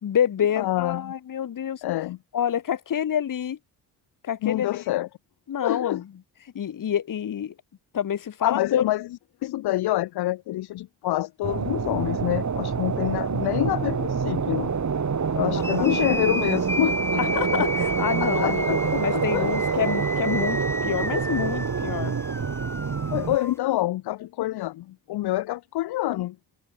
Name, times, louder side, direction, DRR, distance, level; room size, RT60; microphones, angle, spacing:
voice 1, 0.0-1.8 2.3-3.6 4.2-4.8 5.5-6.1 6.5-7.5 7.9-8.9 15.7-15.9 17.2-18.7 19.0-22.2, left 9 dB, 50° left, 1.1 m, -27 dB
voice 2, 0.6-1.1 1.8-2.2 4.4-5.1 5.6-6.0 8.4-9.1 9.4-14.7 15.3-17.2 18.2-19.8 23.1-26.4, left 16 dB, 65° left, 0.6 m, -27 dB
sound 1, 11.4-23.4, right 6 dB, 40° right, 2.6 m, -26 dB
sound 2, 15.6-23.5, left 1 dB, 5° left, 1.3 m, -33 dB
supercardioid pair, 55°, 42 cm